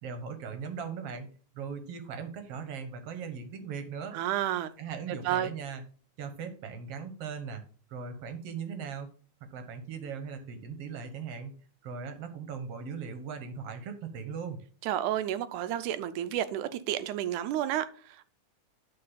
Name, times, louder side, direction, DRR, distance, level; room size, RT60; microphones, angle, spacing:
voice 1, 0.0-1.3 1.6-4.2 4.8-5.8 6.2-7.6 7.9-9.1 9.5-11.5 11.8-14.6, right 6 dB, 60° right, 1.9 m, -39 dB
voice 2, 4.1-4.7 5.2-5.5 14.8-18.3, right 11 dB, 80° right, 2.1 m, -31 dB
11.0 x 3.8 x 5.6 m
omnidirectional pair, 3.6 m